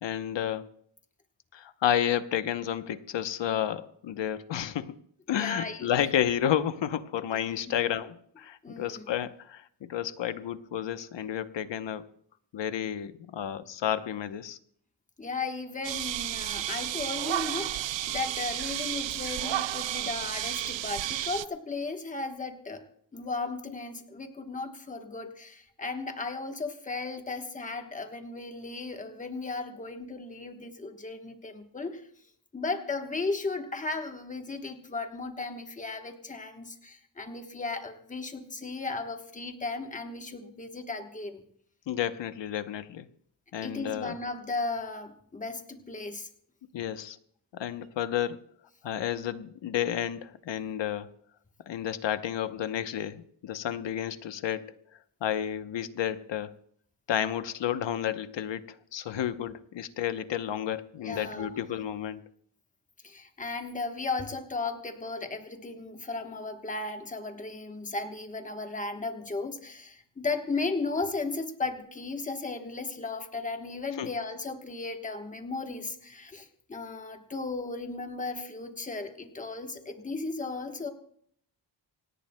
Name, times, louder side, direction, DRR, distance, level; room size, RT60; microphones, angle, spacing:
voice 1, 0.0-0.7 1.5-4.9 5.3-12.1 12.5-14.6 41.9-43.1 43.5-44.2 46.7-47.2 47.5-48.4 48.8-51.1 51.7-54.7 55.2-56.6 57.1-62.3 74.0-74.1, left 10 dB, 75° left, 11 dB, 0.9 m, -31 dB
voice 2, 5.4-5.9 7.3-7.7 8.6-9.1 15.2-22.9 23.1-32.0 32.5-41.4 43.6-46.3 61.0-61.6 63.0-80.9, left 3 dB, 15° left, 5 dB, 1.1 m, -35 dB
sound 1, 15.8-21.5, right 13 dB, 90° right, 0.6 m, -32 dB
26.0 x 18.0 x 2.2 m, 0.65 s
wide cardioid pair, 175°, 43 cm